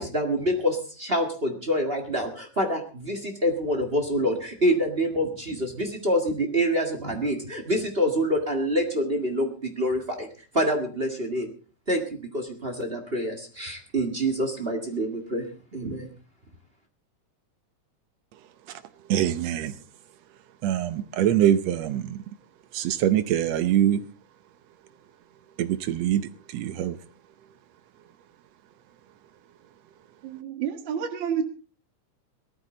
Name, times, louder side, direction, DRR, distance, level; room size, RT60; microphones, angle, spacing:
voice 1, 0.0-10.3 10.5-11.5 11.9-16.1, equal, 25° right, 1.4 m, -26 dB
voice 2, 19.1-19.7 20.6-22.2 22.7-24.0 25.6-27.0, right 11 dB, 70° right, 1.6 m, -24 dB
voice 3, 30.2-31.4, right 7 dB, 45° right, 1.9 m, -29 dB
18.0 x 14.0 x 3.9 m
omnidirectional pair, 3.7 m